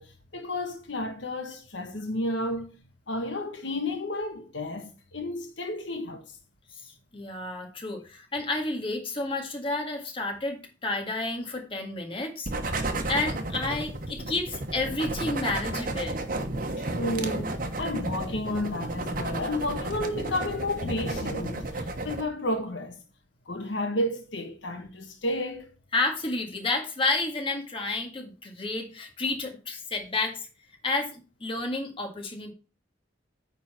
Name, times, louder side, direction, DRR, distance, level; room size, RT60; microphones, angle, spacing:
voice 1, 0.0-6.2 16.8-23.0 23.5-25.7, left 1 dB, 75° left, 1.2 m, -32 dB
voice 2, 6.8-16.2 25.9-30.5 30.8-32.5, left 2 dB, 30° left, 1.8 m, -31 dB
sound 1, 12.4-22.2, right 2 dB, 45° right, 1.1 m, -32 dB
9.2 x 3.9 x 5.9 m
head